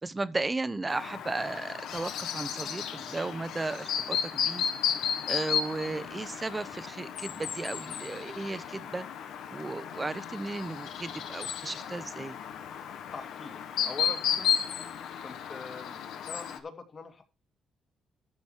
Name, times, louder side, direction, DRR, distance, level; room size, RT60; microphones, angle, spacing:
voice 1, 0.0-4.6 5.3-9.1 9.5-12.4, right 3 dB, 20° right, 0.9 m, -35 dB
Chirp tweet, 0.9-16.6, left 8 dB, 80° left, 1.6 m, -34 dB
voice 2, 13.1-14.5 15.2-17.2, left 4 dB, 40° left, 2.5 m, -43 dB
13.5 x 6.2 x 4.6 m
cardioid pair, 115°, 0 cm